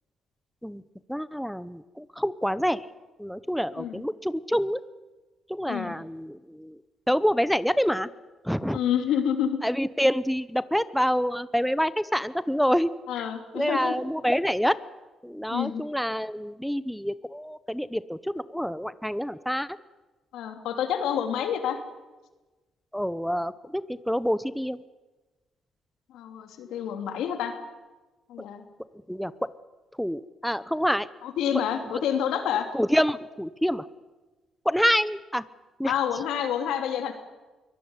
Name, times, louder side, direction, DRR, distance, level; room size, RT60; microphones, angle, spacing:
voice 1, 1.1-2.9 3.2-4.8 5.5-6.8 7.1-8.1 8.4-8.8 9.6-12.9 13.2-13.3 13.5-14.8 15.2-19.7 22.9-24.8 29.1-29.5 30.0-31.1 32.7-33.9 34.6-35.4 35.8-35.9, equal, ahead, 15 dB, 0.8 m, -27 dB
voice 2, 8.7-9.6 13.1-13.9 15.5-15.8 20.3-21.8 26.1-27.5 28.3-28.6 31.2-32.7 35.8-37.1, left 9 dB, 85° left, 6 dB, 3.0 m, -28 dB
23.0 x 19.5 x 9.8 m, 1.2 s
cardioid pair, 90°, 0 cm